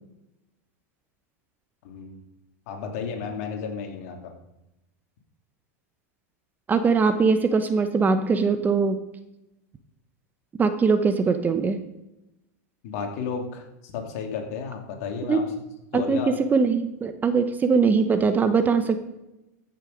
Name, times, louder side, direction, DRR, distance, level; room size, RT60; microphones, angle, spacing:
voice 1, 1.8-2.2 2.7-4.3 12.8-15.4 15.9-16.3, left 6 dB, 65° left, 2 dB, 2.5 m, -33 dB
voice 2, 6.7-9.0 10.6-11.8 15.2-15.4 15.9-19.1, right 5 dB, 20° right, 9 dB, 1.0 m, -21 dB
15.0 x 6.3 x 5.2 m, 0.91 s
supercardioid pair, 120°, 9 cm